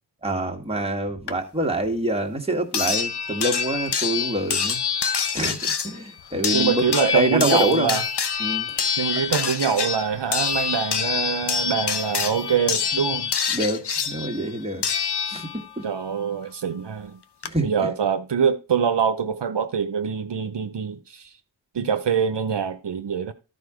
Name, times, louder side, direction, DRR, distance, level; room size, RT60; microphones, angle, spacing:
voice 1, 0.2-4.8 5.3-8.0 8.4-8.7 13.5-14.8 15.3-15.9 17.4-17.9, right 1 dB, 15° right, 1.6 m, -26 dB
sound 1, 1.3-1.4 2.7-15.7 17.0-17.1 17.4-17.5, left 6 dB, 65° left, 0.8 m, -26 dB
voice 2, 6.5-8.0 9.0-13.3 15.8-17.2 17.6-21.3 21.7-23.3, right 7 dB, 70° right, 0.8 m, -24 dB
12.5 x 4.1 x 4.9 m
wide cardioid pair, 50°, 43 cm